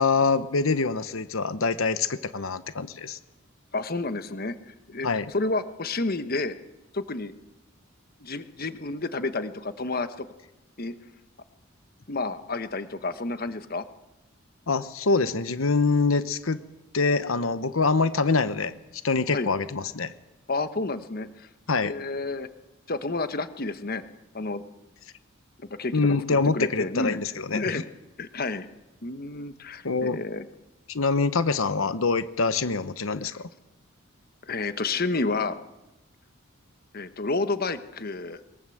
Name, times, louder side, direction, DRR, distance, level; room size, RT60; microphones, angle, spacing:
voice 1, 0.0-3.2 5.0-5.3 14.7-16.6 16.9-18.7 19.0-20.1 21.7-21.9 25.9-27.8 29.8-30.2 30.9-33.5, left 4 dB, 85° left, 13 dB, 1.0 m, -25 dB
voice 2, 3.7-6.6 6.9-7.3 8.2-10.3 10.8-10.9 12.1-13.8 19.3-19.5 20.5-21.5 21.8-22.5 22.9-24.0 24.3-24.6 25.8-27.2 27.5-27.8 28.2-28.7 29.0-30.5 34.5-35.6 36.9-38.4, left 3 dB, 45° left, 11 dB, 1.3 m, -30 dB
22.5 x 22.0 x 7.9 m, 0.96 s
head